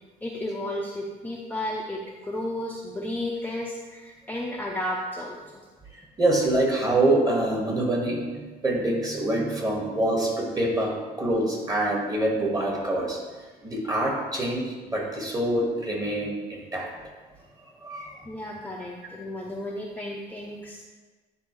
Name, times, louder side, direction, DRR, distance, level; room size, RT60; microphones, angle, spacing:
voice 1, 0.2-5.6 18.2-20.8, left 1 dB, 10° left, -2 dB, 0.6 m, -33 dB
voice 2, 6.2-8.2 8.6-13.2 13.6-14.6 14.9-16.9 17.8-18.2, right 1 dB, 20° right, -1 dB, 1.7 m, -25 dB
9.4 x 4.2 x 3.1 m, 1.3 s
cardioid pair, 110°, 17 cm